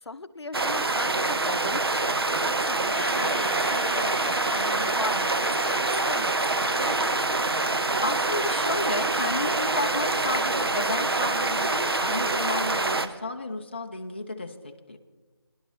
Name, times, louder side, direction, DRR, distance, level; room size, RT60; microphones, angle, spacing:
voice 1, 0.0-7.4, left 3 dB, 80° left, 13 dB, 0.6 m, -38 dB
sound 1, 0.5-13.1, right 3 dB, 65° right, 0.7 m, -26 dB
sound 2, 2.9-13.1, right 2 dB, 5° right, 3.1 m, -38 dB
voice 2, 8.0-15.0, left 2 dB, 25° left, 3 dB, 0.4 m, -32 dB
20.0 x 11.0 x 3.1 m, 1.3 s
figure-of-eight pair, 170°, 14 cm